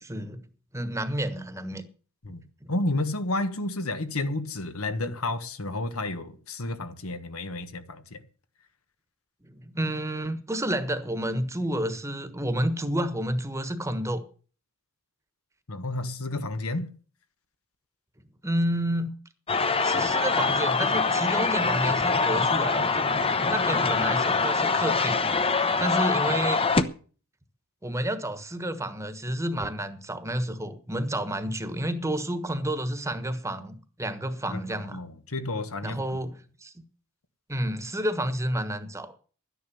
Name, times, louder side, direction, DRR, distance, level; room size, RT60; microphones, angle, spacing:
voice 1, 0.0-0.4 0.7-1.8 2.6-2.7 9.4-14.2 18.4-19.1 19.8-23.1 23.4-25.2 25.8-26.6 27.8-35.0 35.8-36.8 37.5-39.1, right 1 dB, 15° right, 1.3 m, -30 dB
voice 2, 2.7-8.2 15.7-16.9 34.5-36.0, left 2 dB, 75° left, 1.5 m, -31 dB
sound 1, 19.5-26.8, left 4 dB, 25° left, 0.9 m, -24 dB
12.5 x 10.0 x 7.1 m
head